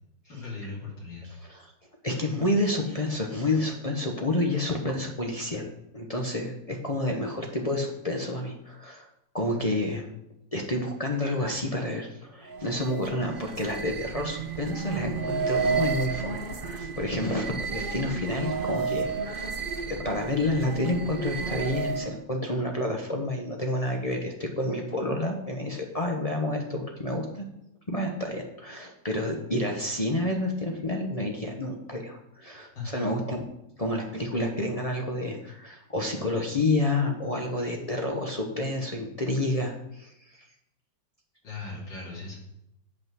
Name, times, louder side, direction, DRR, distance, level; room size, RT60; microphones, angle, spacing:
voice 1, 0.2-1.3 32.7-33.1 41.4-42.4, left 3 dB, 75° left, -5 dB, 3.5 m, -38 dB
voice 2, 2.0-9.1 9.3-10.1 10.5-19.6 19.9-27.5 27.9-33.4 33.8-40.5, left 1 dB, 35° left, 0 dB, 0.6 m, -29 dB
sound 1, 12.5-22.2, right 5 dB, 50° right, 0.6 m, -32 dB
8.0 x 5.7 x 6.1 m, 0.83 s
omnidirectional pair, 2.0 m